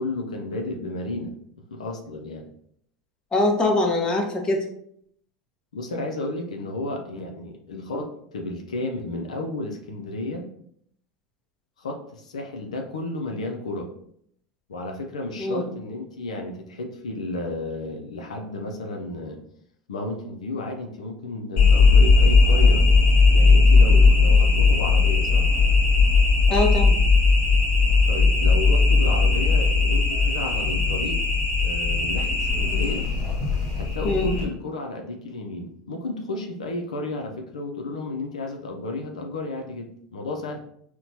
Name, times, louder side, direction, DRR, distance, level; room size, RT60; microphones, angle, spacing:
voice 1, 0.0-1.3 1.7-2.5 5.7-10.5 11.8-13.9 14.7-19.4 19.9-22.9 23.3-25.5 28.1-31.2 31.6-33.0 33.7-40.6, left 2 dB, 90° left, 3 dB, 0.4 m, -32 dB
voice 2, 3.3-4.6 15.4-15.7 26.5-27.0 34.0-34.3, left 2 dB, 25° left, 1 dB, 0.8 m, -23 dB
sound 1, 21.6-34.4, left 4 dB, 45° left, 1.2 m, -18 dB
4.3 x 2.1 x 2.7 m, 0.68 s
hypercardioid pair, 90°, 4 cm